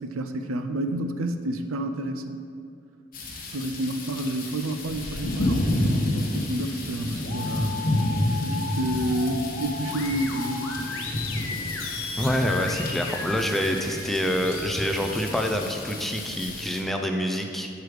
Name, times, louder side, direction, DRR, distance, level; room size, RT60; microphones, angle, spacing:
voice 1, 0.0-2.4 3.5-7.8 8.4-10.7, right 1 dB, 85° right, 7 dB, 0.5 m, -30 dB
sound 1, 3.1-16.8, left 1 dB, 45° left, 1.0 m, -30 dB
sound 2, 6.9-15.3, left 4 dB, 75° left, 0.8 m, -35 dB
voice 2, 12.2-17.7, equal, ahead, 3 dB, 0.4 m, -26 dB
6.5 x 4.7 x 4.8 m, 2.4 s
head